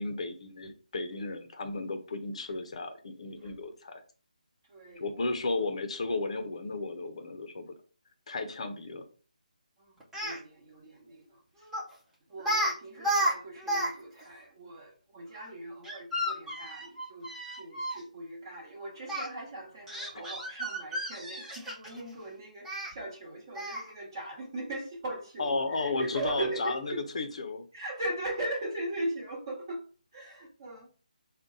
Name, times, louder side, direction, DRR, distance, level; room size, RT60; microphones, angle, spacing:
voice 1, 0.0-4.0 5.0-7.7 8.3-9.0 20.1-20.2 25.4-27.7, left 3 dB, 45° left, 0.5 m, -34 dB
voice 2, 4.7-5.1 9.8-11.7 12.3-27.0 27.7-29.8 30.1-30.9, right 1 dB, 30° right, 1.1 m, -39 dB
Speech, 10.0-10.4 11.7-11.9 12.4-12.7 13.0-13.9 14.2-14.3 15.8-18.0 19.1-19.3 19.9-22.0 22.6-22.9 23.5-23.9, right 1 dB, 5° right, 0.5 m, -32 dB
3.8 x 2.2 x 3.7 m
figure-of-eight pair, 165°, 4 cm